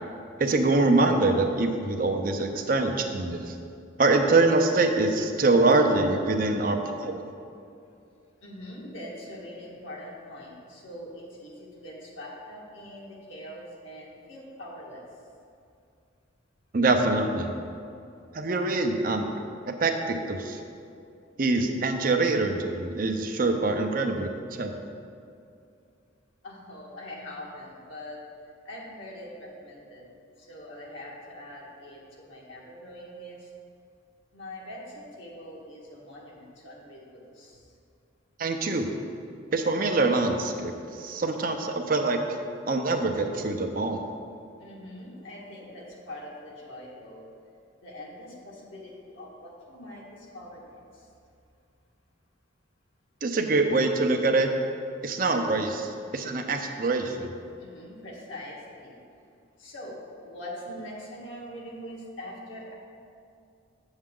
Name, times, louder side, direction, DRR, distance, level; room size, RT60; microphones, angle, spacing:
voice 1, 0.4-3.6 4.0-7.3 16.7-17.5 18.3-19.3 19.8-20.6 21.4-24.7 38.4-38.9 39.5-42.2 42.7-44.0 53.2-54.5 55.0-57.3, right 3 dB, 45° right, 5 dB, 0.5 m, -24 dB
voice 2, 8.4-15.0 17.8-17.9 26.4-28.2 28.6-30.0 30.4-33.5 34.3-37.6 44.6-47.2 47.8-51.0 57.6-59.0 59.6-62.7, left 1 dB, 80° left, -4 dB, 1.7 m, -43 dB
7.6 x 7.2 x 3.7 m, 2.5 s
head